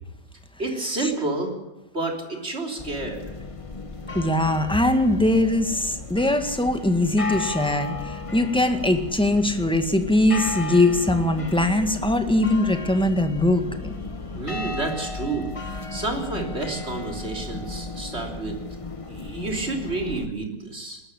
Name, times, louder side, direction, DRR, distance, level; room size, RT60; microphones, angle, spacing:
voice 1, 0.6-1.5 1.9-3.3 14.3-18.6 19.1-21.0, right 3 dB, 35° right, 3 dB, 3.9 m, -30 dB
sound 1, 2.8-20.3, left 3 dB, 20° left, 1.0 m, -34 dB
voice 2, 4.1-13.9, left 1 dB, 5° left, 7 dB, 1.7 m, -21 dB
20.0 x 13.5 x 10.0 m, 0.98 s
omnidirectional pair, 1.9 m